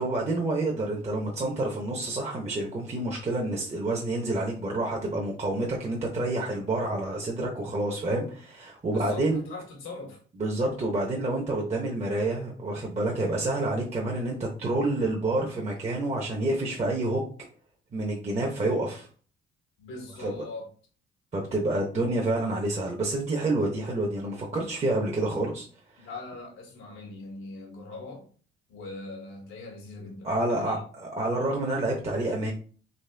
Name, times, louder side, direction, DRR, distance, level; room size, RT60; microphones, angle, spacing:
voice 1, 0.0-9.4 10.4-17.2 17.9-19.1 20.2-20.3 21.3-25.6 26.0-26.1 30.2-32.5, right 2 dB, 35° right, 1.0 m, -28 dB
voice 2, 8.9-10.2 19.8-20.7 26.0-28.3 28.7-30.8, left 3 dB, 90° left, 1.6 m, -41 dB
4.2 x 3.0 x 3.4 m
cardioid pair, 90°, 20 cm